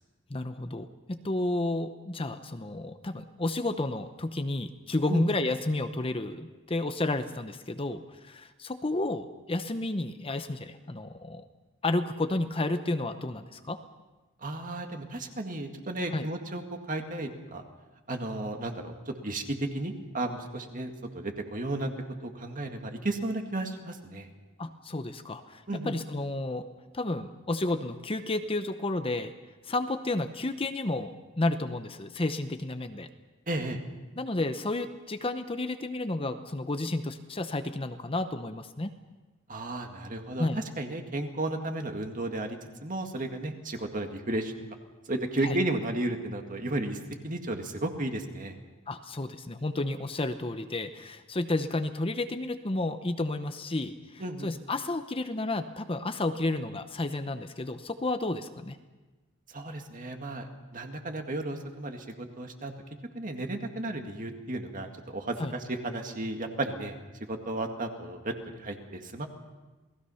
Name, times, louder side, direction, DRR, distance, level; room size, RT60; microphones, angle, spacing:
voice 1, 0.3-11.4 11.8-13.8 16.1-16.3 24.6-26.7 26.9-29.3 29.6-33.1 34.2-38.9 40.4-40.6 45.4-45.6 48.9-58.8 65.4-65.5, left 2 dB, 25° left, 8 dB, 0.8 m, -31 dB
voice 2, 14.4-17.6 18.1-21.9 22.2-24.3 25.7-26.0 33.5-33.8 39.5-44.5 45.1-48.5 54.2-54.5 59.5-62.7 63.1-67.0 67.3-69.3, right 2 dB, 40° right, 4 dB, 2.0 m, -34 dB
28.5 x 19.0 x 5.7 m, 1.2 s
head